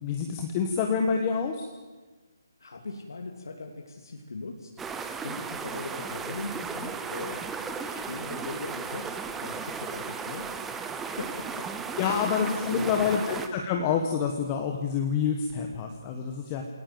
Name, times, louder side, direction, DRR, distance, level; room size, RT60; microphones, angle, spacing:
voice 1, 0.0-1.7 12.0-16.6, left 6 dB, 15° left, 3 dB, 1.3 m, -27 dB
voice 2, 2.6-4.8 5.1-10.8 11.2-11.7 12.1-13.2, left 3 dB, 70° left, 2 dB, 3.0 m, -40 dB
sound 1, 4.8-13.5, right 5 dB, 5° right, 0.8 m, -35 dB
27.5 x 18.5 x 7.9 m, 1.3 s
hypercardioid pair, 175°, 2 cm